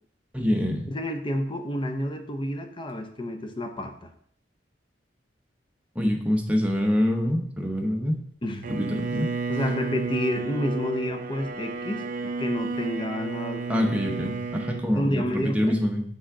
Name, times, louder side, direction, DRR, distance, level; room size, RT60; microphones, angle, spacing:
voice 1, 0.3-0.8 5.9-8.2 8.7-9.3 13.7-16.0, equal, 5° right, 1 dB, 0.8 m, -25 dB
voice 2, 0.9-4.1 8.4-8.7 9.5-13.6 14.2-14.3 14.9-15.8, left 1 dB, 25° left, 6 dB, 0.6 m, -29 dB
Bowed string instrument, 8.6-14.9, right 4 dB, 45° right, 0.4 m, -32 dB
6.2 x 3.4 x 4.8 m, 0.62 s
head